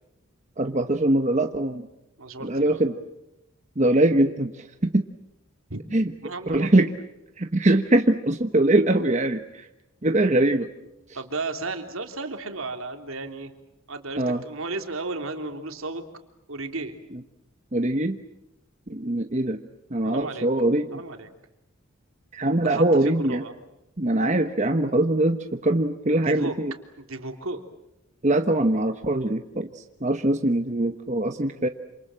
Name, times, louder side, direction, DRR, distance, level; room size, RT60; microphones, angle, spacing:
voice 1, 0.6-1.9 2.4-2.9 3.8-4.6 4.9-5.1 5.9-6.1 6.5-6.9 7.4-9.7 10.0-10.7 14.2-14.4 17.7-18.2 18.9-19.6 19.9-21.0 22.3-23.4 24.0-26.7 28.2-29.7 30.0-31.7, right 1 dB, 35° right, 6 dB, 1.1 m, -22 dB
voice 2, 2.2-2.8 5.7-5.8 6.2-6.9 11.1-13.5 13.9-16.0 16.5-17.0 20.0-20.5 20.9-21.3 22.6-23.6 26.0-26.6 27.0-27.6, right 3 dB, 75° right, 5 dB, 3.1 m, -34 dB
28.0 x 27.0 x 7.5 m, 0.89 s
head